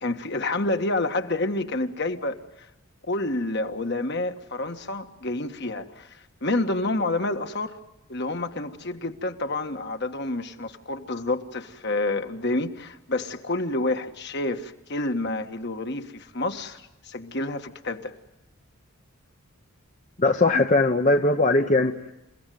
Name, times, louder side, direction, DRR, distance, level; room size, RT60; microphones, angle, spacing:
voice 1, 0.0-2.4 3.1-7.8 8.1-18.1 20.5-20.6, left 2 dB, 50° left, 7 dB, 1.6 m, -28 dB
voice 2, 20.2-22.1, left 2 dB, 35° left, 5 dB, 0.9 m, -20 dB
29.5 x 16.5 x 9.3 m, 0.94 s
head